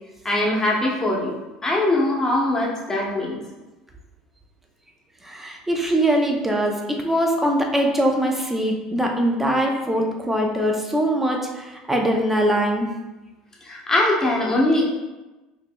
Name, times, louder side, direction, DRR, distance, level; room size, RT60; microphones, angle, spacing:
voice 1, 0.2-1.3 1.6-3.4 13.6-14.8, left 1 dB, 20° left, -3 dB, 1.1 m, -21 dB
voice 2, 5.2-12.9, right 1 dB, 10° right, 1 dB, 0.7 m, -22 dB
4.7 x 3.0 x 2.3 m, 1.1 s
supercardioid pair, 90°, 3 cm